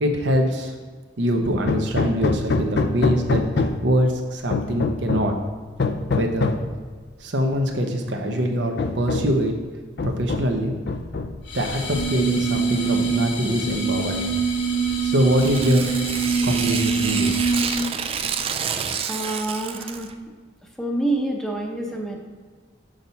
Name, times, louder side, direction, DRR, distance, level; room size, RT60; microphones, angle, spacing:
voice 1, 0.0-0.7 1.2-5.4 6.1-6.6 7.2-9.5 10.0-10.8 11.5-14.3 15.0-15.9 16.4-17.4, equal, 70° right, 3 dB, 0.9 m, -23 dB
Hammer, 1.7-4.0 4.5-5.4 5.8-6.7 7.7-7.8 8.3-8.4 8.8-9.4 10.0-10.6 10.9-11.5, left 3 dB, 60° left, 0.4 m, -24 dB
sound 1, 11.5-18.0, right 4 dB, 85° left, 1.4 m, -24 dB
Tearing, 15.3-20.1, right 7 dB, 30° right, 0.3 m, -29 dB
voice 2, 18.6-20.1 20.8-22.2, right 1 dB, 5° left, 1 dB, 0.7 m, -27 dB
6.3 x 5.6 x 4.1 m, 1.5 s
head